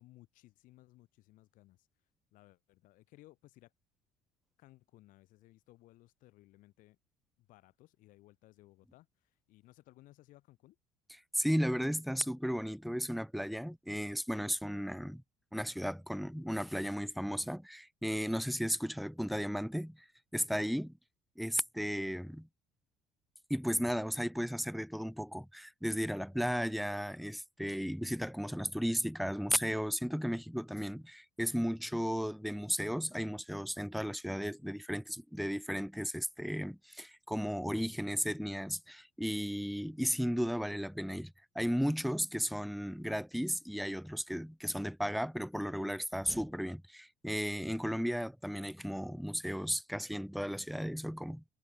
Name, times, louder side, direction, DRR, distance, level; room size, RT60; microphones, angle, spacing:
voice 1, 0.0-1.9 2.3-3.7 4.6-7.0 7.4-10.8 23.7-23.9, left 17 dB, 65° left, 2.2 m, -60 dB
voice 2, 11.3-15.2 15.5-20.0 20.3-20.9 21.4-22.5 23.5-51.4, equal, ahead, 0.4 m, -35 dB
hypercardioid pair, 60°, 15 cm